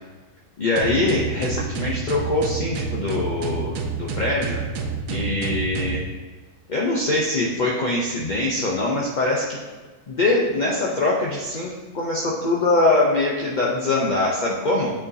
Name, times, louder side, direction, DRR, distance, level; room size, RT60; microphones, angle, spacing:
voice 1, 0.6-4.6 5.1-6.0 6.7-9.6 10.1-14.9, left 2 dB, 50° left, -4 dB, 0.5 m, -23 dB
sound 1, 0.8-6.0, right 5 dB, 65° right, 1.0 m, -28 dB
8.6 x 4.6 x 2.7 m, 1.3 s
omnidirectional pair, 1.6 m